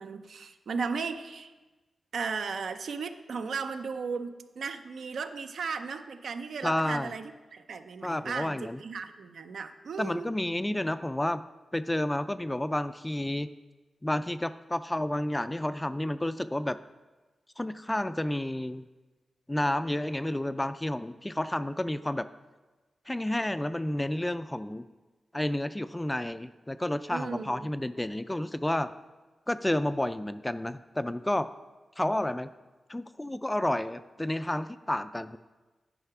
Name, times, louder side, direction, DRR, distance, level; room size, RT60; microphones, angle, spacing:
voice 1, 0.0-1.5 2.1-10.3 27.1-27.7, right 5 dB, 80° right, 8 dB, 0.5 m, -36 dB
voice 2, 6.6-7.1 8.0-8.8 10.0-11.4 11.7-13.5 14.0-16.8 17.6-18.9 19.5-22.3 23.1-24.9 25.3-28.9 29.5-31.5 32.0-32.5 32.9-35.4, left 1 dB, 15° left, 13 dB, 0.3 m, -30 dB
9.9 x 4.8 x 5.8 m, 1.2 s
wide cardioid pair, 90°, 0 cm